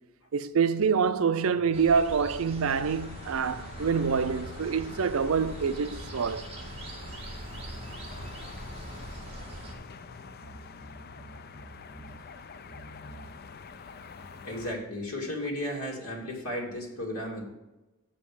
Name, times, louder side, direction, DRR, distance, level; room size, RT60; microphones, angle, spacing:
voice 1, 0.3-6.5, right 6 dB, 70° right, 0.5 m, -26 dB
sound 1, 1.4-3.2 3.7-6.3 6.7-9.2 9.7-12.2 12.7-13.3, left 1 dB, 15° left, 1.6 m, -51 dB
sound 2, 1.7-9.7, right 1 dB, 30° right, 1.6 m, -42 dB
sound 3, 2.8-14.8, left 5 dB, 45° left, 0.5 m, -47 dB
voice 2, 14.4-17.4, left 1 dB, 80° left, 2.4 m, -34 dB
7.0 x 5.4 x 6.9 m
head